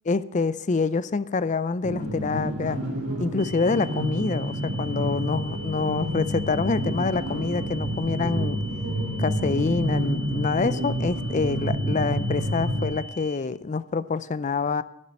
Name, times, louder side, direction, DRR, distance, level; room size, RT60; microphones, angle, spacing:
voice 1, 0.1-2.8 3.2-8.6 9.2-14.8, left 4 dB, 35° left, 16 dB, 0.4 m, -26 dB
sound 1, 1.8-12.9, equal, 90° right, 2.8 m, -28 dB
sound 2, 3.4-13.4, left 1 dB, 55° right, 1.7 m, -42 dB
11.0 x 7.5 x 8.6 m, 0.84 s
head